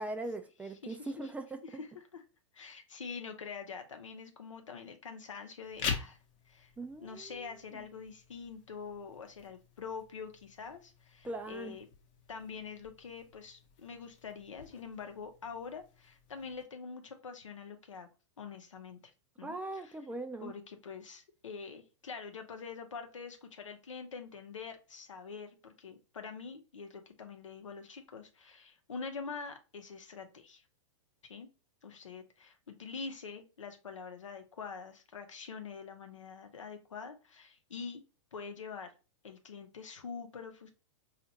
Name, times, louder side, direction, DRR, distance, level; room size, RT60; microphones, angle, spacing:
voice 1, 0.0-1.8 6.8-7.5 11.2-11.8 19.4-20.5, right 2 dB, 10° right, 0.4 m, -40 dB
voice 2, 0.6-1.3 1.6-2.2 2.5-6.2 6.5-6.7 7.0-11.9 12.3-18.1 18.4-19.0 19.4-19.9 20.4-30.6 31.2-31.5 31.8-38.0 38.3-38.9 39.2-40.7, left 5 dB, 90° left, 0.7 m, -45 dB
sound 1, 5.6-16.6, left 6 dB, 45° left, 0.9 m, -45 dB
4.2 x 2.4 x 2.7 m
hypercardioid pair, 110°, 16 cm